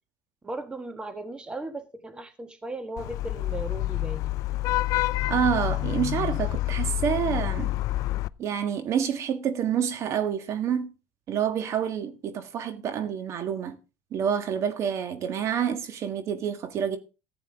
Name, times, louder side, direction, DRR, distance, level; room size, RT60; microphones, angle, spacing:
voice 1, 0.4-4.3, right 2 dB, 15° right, 1.4 m, -37 dB
Vehicle horn car horn honking / Traffic noise roadway noise, 3.0-8.3, left 17 dB, 60° left, 0.5 m, -28 dB
voice 2, 5.3-7.7 8.4-10.9 11.3-13.8 14.1-17.0, right 8 dB, 50° right, 1.6 m, -28 dB
14.5 x 8.9 x 3.6 m
supercardioid pair, 105°, 7 cm